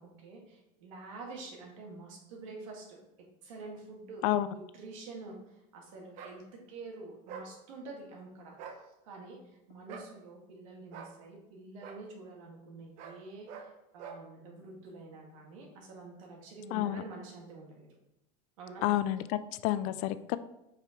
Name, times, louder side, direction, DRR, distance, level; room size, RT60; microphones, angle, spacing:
voice 1, 0.0-3.0 3.4-8.5 8.9-17.9 18.6-18.9, right 3 dB, 90° right, 0 dB, 2.0 m, -47 dB
sound 1, 6.2-6.4 7.3-7.5 8.5-8.8 9.9-10.1 10.9-11.1 11.8-12.0 13.0-13.2 13.5-13.7 14.0-14.2, right 6 dB, 45° right, 0.8 m, -45 dB
voice 2, 16.7-17.0 18.8-20.4, left 13 dB, 50° left, 13 dB, 0.4 m, -30 dB
5.9 x 4.9 x 4.5 m, 0.90 s
supercardioid pair, 155°, 16 cm